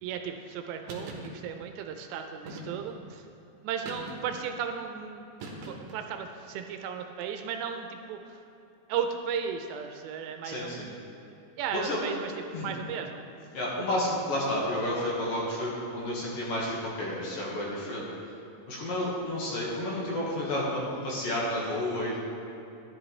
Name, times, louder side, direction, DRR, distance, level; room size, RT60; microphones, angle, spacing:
voice 1, 0.0-3.2 3.6-5.3 5.6-8.4 8.9-10.9 11.6-12.3 12.6-13.2, right 7 dB, 80° right, 5 dB, 2.7 m, -35 dB
sound 1, 0.9-1.3 2.5-3.0 3.8-4.5 5.4-6.0, right 2 dB, 65° right, 2.5 m, -41 dB
voice 2, 10.4-10.9 11.7-12.0 12.5-12.7 13.5-18.1 18.7-22.2, left 1 dB, 60° left, -5 dB, 2.9 m, -31 dB
13.0 x 10.5 x 3.2 m, 2.8 s
omnidirectional pair, 5.1 m